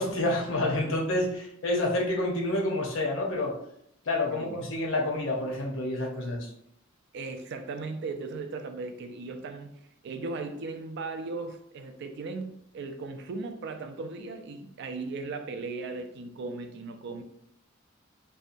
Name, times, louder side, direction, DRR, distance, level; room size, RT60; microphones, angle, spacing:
voice 1, 0.0-3.6 4.1-6.5, left 1 dB, 75° left, 0 dB, 0.7 m, -28 dB
voice 2, 4.3-4.6 7.1-9.7 10.0-17.2, right 3 dB, 60° right, 7 dB, 0.3 m, -37 dB
2.7 x 2.2 x 2.5 m, 0.73 s
head